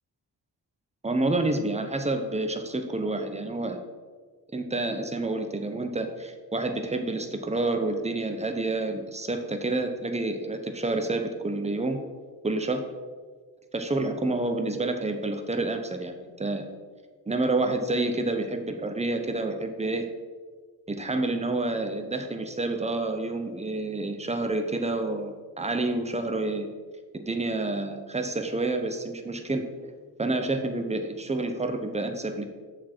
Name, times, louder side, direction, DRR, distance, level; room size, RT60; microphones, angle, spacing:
voice 1, 1.0-3.8 4.5-12.0 12.4-12.8 13.7-16.7 17.3-20.1 20.9-26.7 27.1-29.9 30.2-32.4, right 2 dB, 15° right, 6 dB, 0.8 m, -29 dB
7.2 x 6.2 x 4.4 m, 1.5 s
wide cardioid pair, 95°, 42 cm